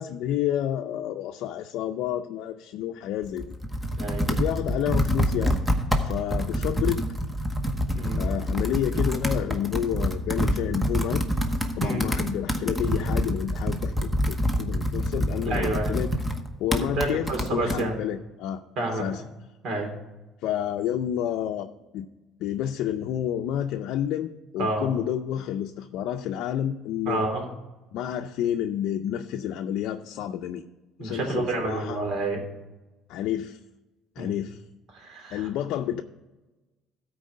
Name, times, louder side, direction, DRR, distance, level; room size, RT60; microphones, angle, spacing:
voice 1, 0.0-3.5 4.3-5.6 5.9-7.0 8.1-11.2 11.8-16.1 16.6-18.6 18.9-19.2 20.4-22.1 22.4-27.2 27.9-30.6 31.0-32.0 33.1-33.6 34.2-34.6 35.3-36.0, left 10 dB, 70° left, 5 dB, 0.5 m, -29 dB
Computer keyboard, 3.2-17.8, equal, 5° right, 1.0 m, -27 dB
voice 2, 4.0-4.3 7.9-8.3 11.8-12.1 15.5-16.0 17.0-17.9 18.8-19.0 19.6-19.9 24.6-24.9 27.0-27.5 31.0-32.4 34.2-34.3 34.9-35.5, right 2 dB, 60° right, 2 dB, 3.1 m, -29 dB
13.0 x 4.7 x 6.4 m, 1.1 s
cardioid pair, 125°, 0 cm